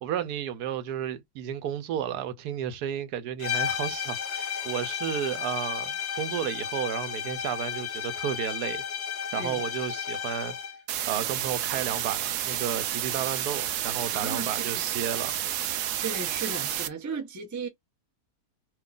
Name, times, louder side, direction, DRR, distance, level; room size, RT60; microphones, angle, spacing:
voice 1, 0.0-8.8 9.3-10.5 11.1-15.3, right 9 dB, 85° right, 1.2 m, -32 dB
sound 1, 3.4-10.8, left 7 dB, 55° left, 0.9 m, -33 dB
sound 2, 10.9-16.9, right 11 dB, 70° right, 0.8 m, -30 dB
voice 2, 14.1-14.8 16.0-17.7, right 5 dB, 20° right, 0.5 m, -35 dB
3.0 x 2.4 x 3.7 m
omnidirectional pair, 1.6 m